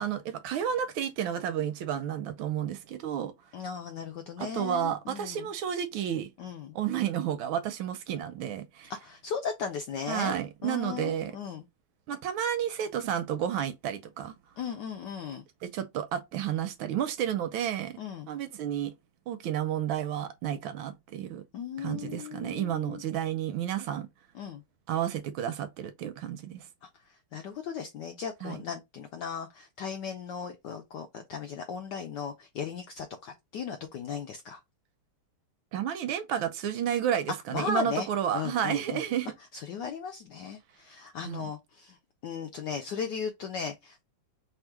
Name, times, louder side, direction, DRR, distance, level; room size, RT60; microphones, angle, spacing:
voice 1, 0.0-3.3 4.4-6.3 6.7-8.9 10.1-11.3 12.1-14.3 15.6-18.0 18.3-18.9 19.3-21.4 21.8-24.1 24.9-26.7 28.4-28.6 35.7-39.3 41.2-41.5, right 9 dB, 75° right, 1.2 m, -31 dB
voice 2, 3.5-5.5 6.4-6.7 8.9-11.6 14.6-15.4 18.0-18.3 21.5-23.0 24.3-24.6 26.8-34.6 37.5-38.1 38.3-39.0 39.5-42.0 42.2-44.0, left 6 dB, 80° left, 0.9 m, -37 dB
3.6 x 2.4 x 4.5 m
omnidirectional pair, 2.4 m